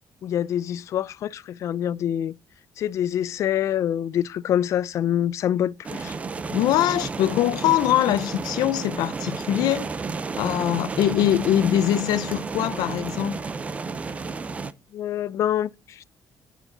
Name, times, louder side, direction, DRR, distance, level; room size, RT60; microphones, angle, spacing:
voice 1, 0.2-2.3 2.8-6.1 14.9-16.0, left 10 dB, 50° left, 0.4 m, -26 dB
sound 1, 5.8-14.7, right 4 dB, 20° right, 0.5 m, -32 dB
voice 2, 6.5-9.9 10.4-13.4, left 12 dB, 85° left, 0.7 m, -22 dB
9.1 x 6.0 x 3.9 m
cardioid pair, 180°, 7 cm